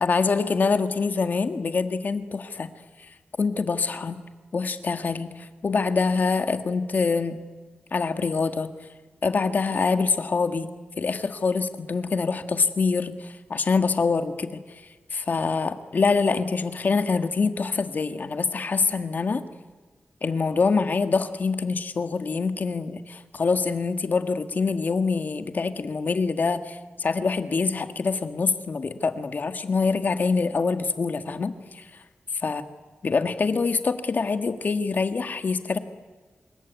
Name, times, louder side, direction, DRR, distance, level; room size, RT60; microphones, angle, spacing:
voice 1, 0.0-2.7 3.4-4.2 4.5-7.4 7.9-8.7 9.2-10.7 11.0-14.6 15.1-19.4 20.2-31.9 32.4-32.6 33.0-35.8, left 4 dB, 50° left, 9 dB, 1.7 m, -25 dB
26.5 x 22.0 x 9.4 m, 1.3 s
wide cardioid pair, 150°, 4 cm